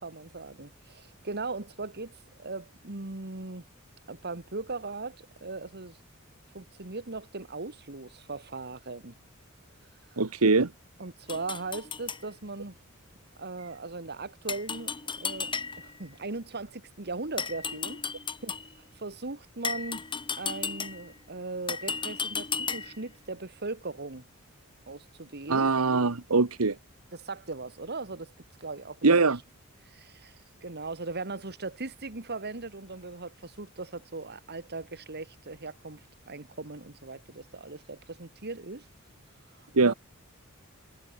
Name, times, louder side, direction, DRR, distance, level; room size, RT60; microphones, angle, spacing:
voice 1, 0.0-3.6 4.1-6.0 6.5-9.1 10.1-10.2 11.0-12.8 13.4-18.0 18.4-20.1 20.4-24.2 24.9-25.7 27.1-28.3 28.6-29.0 29.8-30.4 30.6-38.9 39.8-39.9, right 3 dB, 50° right, 2.0 m, -39 dB
voice 2, 10.2-10.7 25.5-26.8 29.0-29.4 39.7-39.9, right 3 dB, 85° right, 1.2 m, -22 dB
sound 1, 11.3-12.2 14.5-16.0 17.4-18.7 19.6-21.2 21.7-23.1, left 5 dB, 25° left, 3.6 m, -34 dB
head